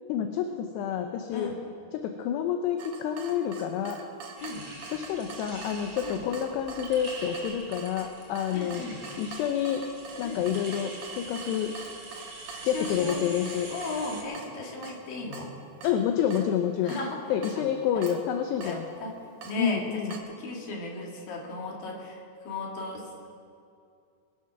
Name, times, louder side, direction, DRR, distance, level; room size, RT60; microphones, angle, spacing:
voice 1, 0.1-1.5 1.9-4.0 4.9-8.9 9.2-9.8 10.2-11.7 12.6-13.7 15.8-17.0 17.3-18.9 19.6-20.2, left 9 dB, 80° left, 5 dB, 2.8 m, -28 dB
Water tap faucet / Drip, 2.8-20.2, right 4 dB, 90° right, 1.5 m, -45 dB
sound 1, 4.4-14.2, right 2 dB, 25° right, 2.5 m, -44 dB
voice 2, 8.5-9.0 10.2-10.4 12.6-13.2 13.7-15.5 16.8-17.2 18.0-18.1 18.6-19.1 19.4-23.3, left 2 dB, 60° left, -1 dB, 3.5 m, -36 dB
22.5 x 7.5 x 6.0 m, 2.4 s
omnidirectional pair, 5.0 m